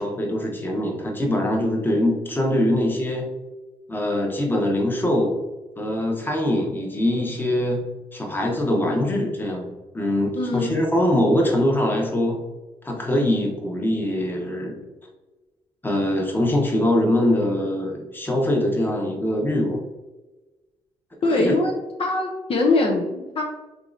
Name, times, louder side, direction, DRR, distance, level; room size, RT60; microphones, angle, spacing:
voice 1, 0.0-3.3 3.9-5.4 5.8-7.8 8.1-12.4 12.8-14.8 15.8-19.8 21.3-21.5, left 1 dB, 15° left, 0 dB, 1.0 m, -23 dB
voice 2, 10.4-10.7 21.2-23.4, left 2 dB, 50° left, 0 dB, 0.6 m, -22 dB
3.6 x 3.0 x 2.5 m, 1.1 s
cardioid pair, 70°, 12 cm